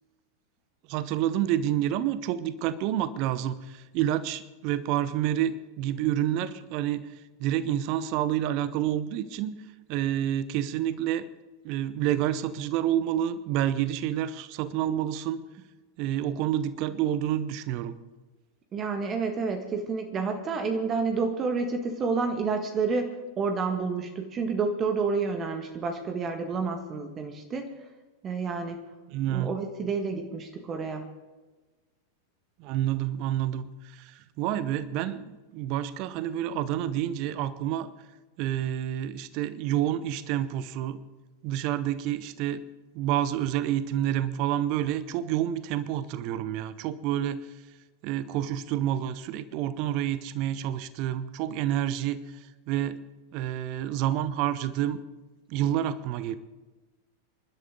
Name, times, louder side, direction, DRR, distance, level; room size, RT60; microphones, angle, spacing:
voice 1, 0.9-7.0 7.4-9.5 9.9-11.3 11.6-15.4 16.0-18.0 29.1-29.5 32.6-37.9 38.4-41.0 41.4-42.6 42.9-47.4 48.0-52.4 52.7-53.0 53.3-55.0 55.5-56.4, right 11 dB, 45° right, 15 dB, 0.9 m, -28 dB
voice 2, 18.7-27.7 28.2-28.8 29.3-31.0, right 4 dB, 25° right, 5 dB, 1.7 m, -29 dB
26.5 x 12.5 x 3.8 m, 1.2 s
figure-of-eight pair, 90°, 0 cm